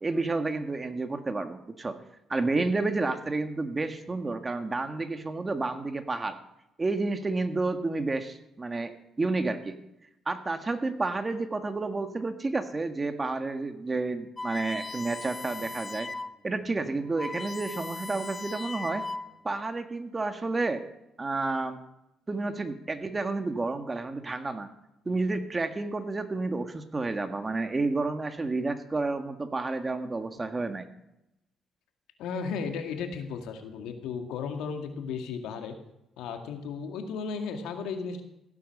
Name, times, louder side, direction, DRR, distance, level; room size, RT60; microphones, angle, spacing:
voice 1, 0.0-2.0 2.3-6.4 6.8-8.9 9.2-9.8 10.3-16.1 16.4-19.1 19.4-20.8 21.2-21.8 22.3-24.7 25.1-30.9, right 3 dB, 25° right, 7 dB, 1.8 m, -30 dB
sound 1, 14.4-16.4 16.8-16.9 17.1-19.5, left 3 dB, 20° left, 0.9 m, -38 dB
voice 2, 32.2-35.8 36.2-38.2, left 5 dB, 85° left, 5 dB, 2.2 m, -35 dB
16.0 x 9.6 x 6.7 m, 0.86 s
cardioid pair, 95°, 0 cm